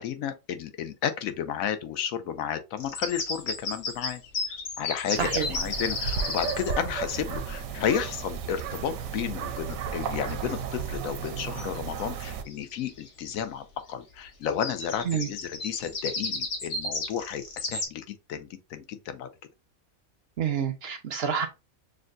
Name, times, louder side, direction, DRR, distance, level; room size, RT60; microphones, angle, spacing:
voice 1, 0.0-4.2 4.8-19.3, left 8 dB, 85° left, 1.0 m, -32 dB
sound 1, 2.8-6.7 10.2-10.3 10.8-11.3 11.6-11.7 12.0-13.1 14.4-17.9, left 3 dB, 60° left, 1.4 m, -33 dB
sound 2, 5.1-12.4, right 6 dB, 85° right, 1.0 m, -34 dB
voice 2, 20.4-21.5, right 7 dB, 60° right, 0.7 m, -28 dB
6.3 x 2.2 x 2.5 m
omnidirectional pair, 1.4 m